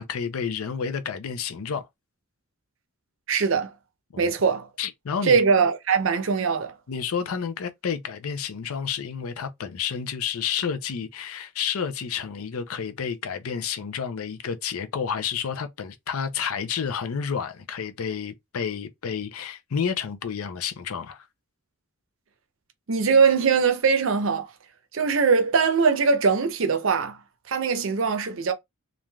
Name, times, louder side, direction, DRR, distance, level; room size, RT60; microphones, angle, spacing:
voice 1, 0.0-1.9 4.1-4.3 4.8-5.4 6.9-21.2, left 7 dB, 85° left, 0.5 m, -30 dB
voice 2, 3.3-3.7 4.2-4.7 5.2-6.7 22.9-24.5 24.9-27.2 27.5-28.5, right 5 dB, 65° right, 0.6 m, -21 dB
3.1 x 2.5 x 2.2 m
head